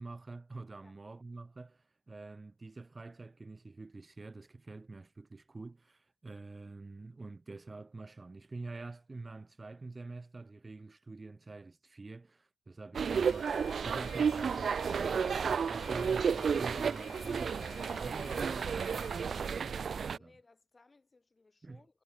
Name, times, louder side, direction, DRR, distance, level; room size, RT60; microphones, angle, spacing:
voice 1, 0.0-20.3 21.6-21.8, right 3 dB, 30° right, 3.5 m, -47 dB
sound 1, 12.9-20.2, right 6 dB, 60° right, 0.4 m, -32 dB
Alarm, 13.1-19.3, left 8 dB, 90° left, 4.5 m, -53 dB
voice 2, 20.2-22.0, left 3 dB, 30° left, 7.0 m, -64 dB
wide cardioid pair, 115°, 0 cm